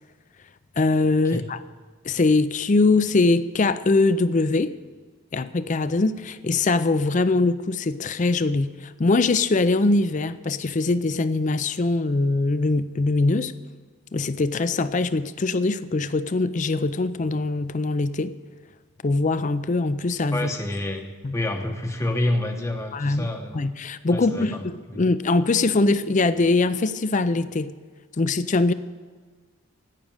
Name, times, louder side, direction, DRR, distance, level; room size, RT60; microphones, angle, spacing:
voice 1, 0.8-1.6 2.0-4.8 5.3-13.5 14.1-18.3 19.0-20.5 21.2-21.3 22.9-23.3 23.5-27.7 28.2-28.7, left 3 dB, 35° left, 0.4 m, -22 dB
voice 2, 20.3-23.6 24.1-24.6 24.9-25.1, left 1 dB, 15° left, 0.8 m, -28 dB
16.5 x 6.5 x 8.8 m
head